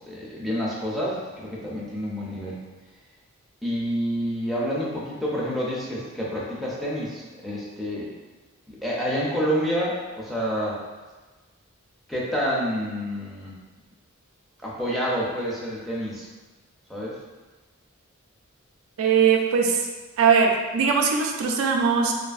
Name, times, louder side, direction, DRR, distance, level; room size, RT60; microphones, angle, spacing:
voice 1, 0.0-2.7 3.6-8.1 8.7-10.8 12.1-13.6 14.6-16.3 16.9-17.1, equal, ahead, -6 dB, 0.4 m, -28 dB
voice 2, 19.0-19.8 20.2-22.1, right 6 dB, 70° right, 1 dB, 0.3 m, -20 dB
2.6 x 2.5 x 2.3 m, 1.3 s
head